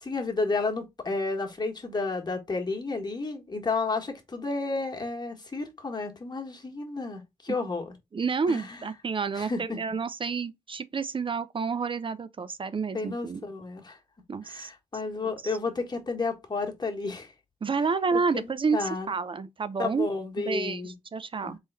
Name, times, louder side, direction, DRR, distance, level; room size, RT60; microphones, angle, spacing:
voice 1, 0.0-7.9 8.5-8.8 9.3-9.8 12.9-14.0 14.4-17.3 18.1-19.1 19.8-20.9 21.4-21.5, left 3 dB, 35° left, 1.6 m, -32 dB
voice 2, 8.1-13.4 14.3-14.7 15.2-15.3 17.6-20.1 20.4-21.6, right 5 dB, 45° right, 0.6 m, -29 dB
3.7 x 3.5 x 4.1 m
cardioid pair, 60°, 12 cm